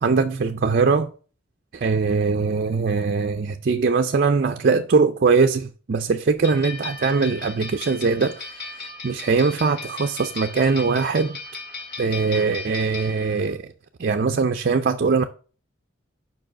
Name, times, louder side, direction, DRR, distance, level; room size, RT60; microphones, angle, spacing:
voice 1, 0.0-1.1 1.7-8.5 9.0-11.4 12.0-13.7 14.0-15.2, right 4 dB, 50° right, 0.4 m, -21 dB
sound 1, 6.4-13.5, left 3 dB, 55° left, 1.8 m, -36 dB
5.4 x 4.8 x 6.2 m
head